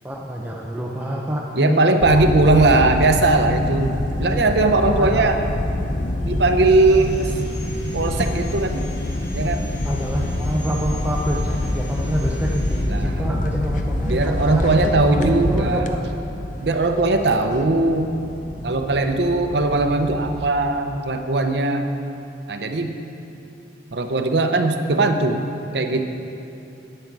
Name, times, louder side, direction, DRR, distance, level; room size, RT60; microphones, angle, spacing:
voice 1, 0.0-1.8 4.9-5.2 9.8-16.0, equal, 10° right, -2 dB, 0.6 m, -27 dB
voice 2, 1.6-5.4 6.2-7.3 7.9-8.9 9.3-9.7 12.9-13.5 14.0-15.9 16.6-18.1 18.6-21.9 22.5-22.9 23.9-25.4 25.7-26.0, right 2 dB, 70° right, 6 dB, 0.7 m, -19 dB
sound 1, 2.0-20.5, left 1 dB, 45° left, 0.6 m, -26 dB
Sawing, 6.8-12.8, left 1 dB, 70° left, 2.3 m, -42 dB
10.5 x 9.1 x 4.7 m, 2.8 s
head